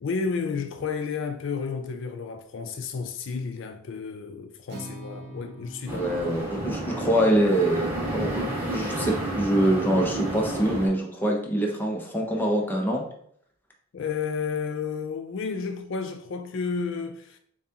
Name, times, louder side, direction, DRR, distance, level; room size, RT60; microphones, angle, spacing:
voice 1, 0.0-6.1 13.9-17.4, left 5 dB, 65° left, 0.4 m, -31 dB
Acoustic guitar, 4.7-8.9, right 1 dB, 55° right, 1.2 m, -45 dB
sound 1, 5.8-10.9, right 1 dB, 15° right, 1.9 m, -31 dB
voice 2, 5.9-13.0, right 1 dB, 10° left, 0.8 m, -25 dB
7.0 x 2.4 x 2.8 m
head